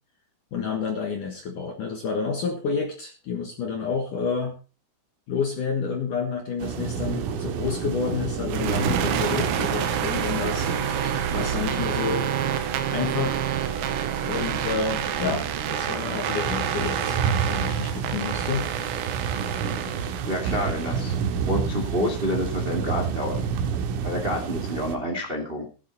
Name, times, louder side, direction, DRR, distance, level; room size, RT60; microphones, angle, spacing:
voice 1, 0.5-4.5 5.3-12.3 12.9-13.4 14.2-17.2 17.5-18.7, left 5 dB, 65° left, 4 dB, 2.2 m, -29 dB
sound 1, 6.6-25.0, right 6 dB, 90° right, 4.0 m, -30 dB
sound 2, 8.5-21.3, right 8 dB, 75° right, 3.2 m, -28 dB
voice 2, 20.2-21.1 21.4-23.5 24.0-25.7, left 1 dB, 35° right, 3 dB, 0.9 m, -28 dB
15.0 x 11.5 x 4.1 m, 0.35 s
omnidirectional pair, 5.8 m